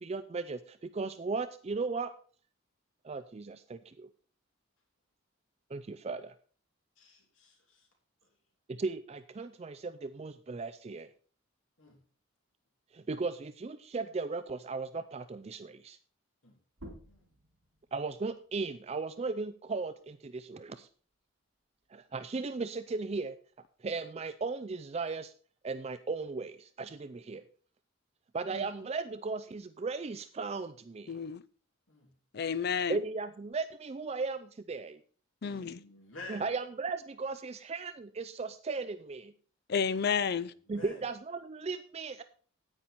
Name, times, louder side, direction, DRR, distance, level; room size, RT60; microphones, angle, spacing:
voice 1, 0.0-2.1 3.0-4.1 5.7-6.3 8.7-11.1 12.9-16.0 17.9-20.9 21.9-23.4 23.8-25.3 25.6-27.4 28.3-31.1 32.9-35.0 36.3-39.3 40.7-42.2, right 4 dB, 30° right, 0.4 m, -36 dB
voice 2, 7.0-7.9 11.8-12.0 16.4-16.6 17.1-17.2 31.9-32.1 35.4-36.5 40.4-41.0, left 2 dB, 65° left, 3.1 m, -50 dB
sound 1, 16.7-21.9 22.3-24.1, equal, 85° right, 4.0 m, -57 dB
voice 3, 31.1-31.4 32.3-33.0 35.4-35.8 39.7-40.5, left 6 dB, 50° left, 0.5 m, -31 dB
9.8 x 9.0 x 4.2 m
head